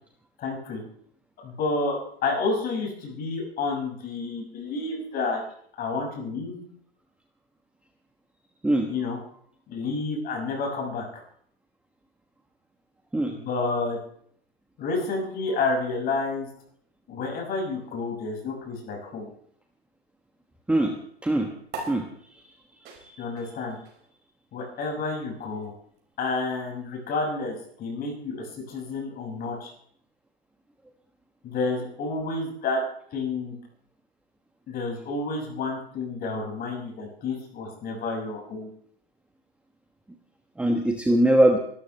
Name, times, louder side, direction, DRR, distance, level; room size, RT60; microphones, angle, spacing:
voice 1, 0.4-0.8 1.4-5.4 5.8-6.6 8.9-9.2 9.7-11.0 13.3-14.0 14.8-16.5 17.1-19.3 23.2-23.8 24.5-25.7 26.2-29.7 31.4-32.8 33.1-33.6 34.7-38.7, left 3 dB, 30° left, 1 dB, 6.3 m, -30 dB
sound 1, 21.7-28.5, right 3 dB, 30° right, 5.5 m, -45 dB
voice 2, 21.9-22.4 23.0-23.2 40.6-41.6, right 1 dB, 5° right, 4 dB, 1.2 m, -22 dB
24.5 x 13.0 x 3.3 m, 0.64 s
hypercardioid pair, 115°, 31 cm